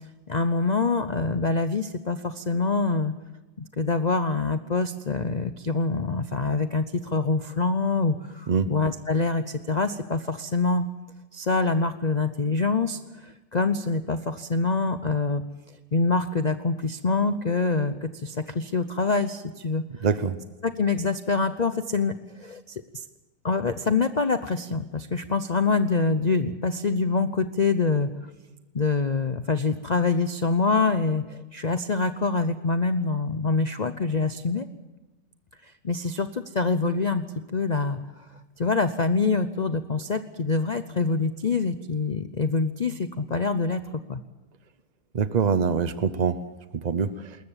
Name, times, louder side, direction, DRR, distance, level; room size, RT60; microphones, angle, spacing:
voice 1, 0.3-3.1 3.8-10.9 11.3-15.4 15.9-20.1 20.6-23.0 23.4-28.1 28.7-34.7 35.6-37.3 37.5-38.0 38.6-44.2, left 4 dB, 55° left, 10 dB, 0.4 m, -25 dB
voice 2, 20.0-20.4 45.1-46.4 46.8-47.1, right 6 dB, 60° right, 12 dB, 0.4 m, -23 dB
21.0 x 20.0 x 7.4 m, 1.1 s
omnidirectional pair, 1.9 m